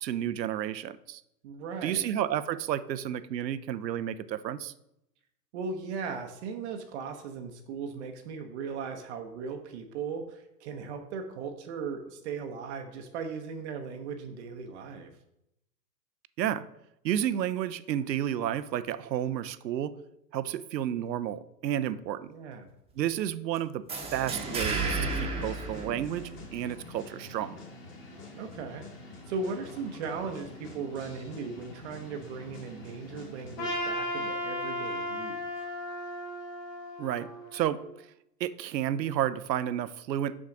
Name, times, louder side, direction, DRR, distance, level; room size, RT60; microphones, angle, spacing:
voice 1, 0.0-1.2 1.8-4.7 16.4-16.6 17.0-19.9 20.3-22.3 23.0-23.8 24.1-27.6 37.0-37.8 38.4-40.3, right 11 dB, 80° right, 15 dB, 0.6 m, -31 dB
voice 2, 1.4-2.1 5.5-15.1 22.3-22.7 28.4-28.8 29.3-35.4, right 5 dB, 45° right, 5 dB, 0.8 m, -37 dB
sound 1, 23.9-26.6, right 3 dB, 10° right, 1.1 m, -32 dB
sound 2, 24.2-33.9, left 2 dB, 25° left, 1.8 m, -46 dB
Trumpet, 33.6-37.9, left 1 dB, 65° left, 2.8 m, -35 dB
6.2 x 6.0 x 3.8 m, 0.83 s
hypercardioid pair, 120°, 50 cm